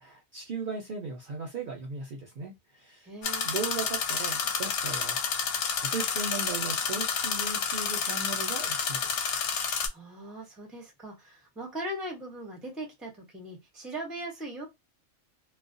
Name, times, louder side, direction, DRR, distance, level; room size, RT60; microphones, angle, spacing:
voice 1, 0.0-3.1 3.4-9.2, right 4 dB, 55° right, 0.6 m, -37 dB
voice 2, 3.0-3.5 9.9-14.7, right 1 dB, ahead, 0.4 m, -39 dB
sound 1, 3.2-9.9, left 6 dB, 70° left, 0.8 m, -30 dB
2.3 x 2.1 x 2.5 m
omnidirectional pair, 1.3 m